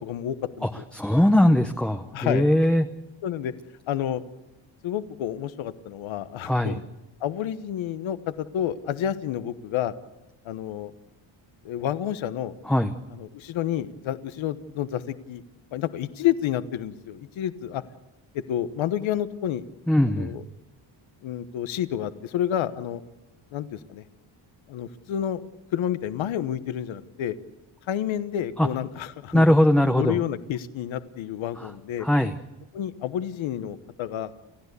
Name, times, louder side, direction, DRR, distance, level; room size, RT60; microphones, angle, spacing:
voice 1, 0.0-0.7 2.1-2.4 3.2-3.5 3.9-4.2 4.8-6.8 7.2-9.9 10.4-10.9 11.6-12.5 13.2-15.4 15.7-17.8 18.3-19.6 20.1-20.4 21.2-23.0 23.5-24.0 24.7-25.4 25.7-27.4 27.9-29.5 30.0-32.1 32.7-34.3, left 11 dB, 80° left, 12 dB, 1.2 m, -29 dB
voice 2, 0.6-2.9 6.5-6.8 12.6-12.9 19.9-20.3 28.6-28.7 29.3-30.2 31.6-31.7 32.0-32.3, left 1 dB, ahead, 6 dB, 0.7 m, -20 dB
29.5 x 15.5 x 8.2 m, 1.0 s
cardioid pair, 160°, 47 cm